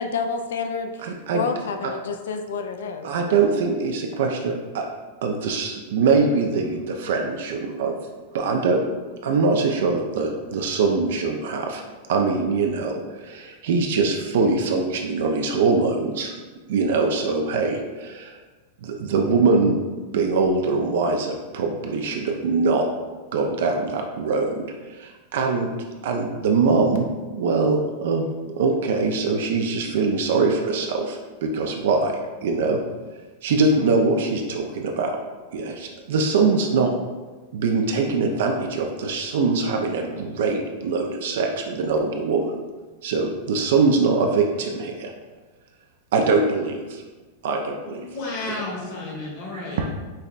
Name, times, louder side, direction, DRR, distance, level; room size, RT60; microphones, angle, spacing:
voice 1, 0.0-3.4, left 4 dB, 80° left, 6 dB, 0.3 m, -29 dB
voice 2, 1.0-1.4 3.0-4.9 5.2-8.0 8.3-8.8 9.2-11.8 12.1-16.3 16.7-18.4 18.8-19.8 20.1-22.9 23.3-24.6 24.9-25.7 26.0-27.1 27.4-32.8 33.4-35.2 35.5-36.9 37.5-42.5 43.0-45.1 46.1-47.0 47.4-48.0 49.5-49.9, right 4 dB, 70° right, 2 dB, 0.4 m, -23 dB
voice 3, 47.7-49.9, left 2 dB, 55° left, -3 dB, 1.2 m, -32 dB
5.4 x 2.1 x 2.4 m, 1.3 s
hypercardioid pair, 135°, 0 cm